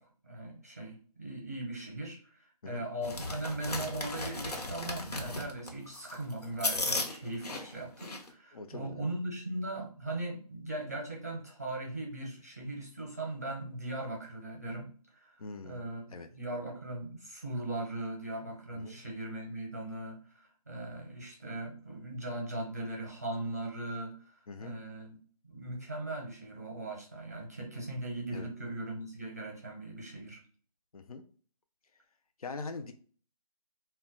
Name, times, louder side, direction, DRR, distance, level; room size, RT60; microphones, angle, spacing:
voice 1, 0.0-14.9 15.1-25.2 25.4-30.4, right 1 dB, 25° right, -2 dB, 0.6 m, -39 dB
sound 1, 3.0-8.3, left 2 dB, 85° left, 0.8 m, -36 dB
voice 2, 8.5-9.0 15.4-15.8 16.1-16.3 18.7-19.0 24.5-24.8 28.3-28.5 30.9-31.2 32.4-32.9, left 4 dB, 65° left, 7 dB, 0.4 m, -42 dB
2.2 x 2.1 x 3.6 m, 0.42 s
figure-of-eight pair, 180°, 20 cm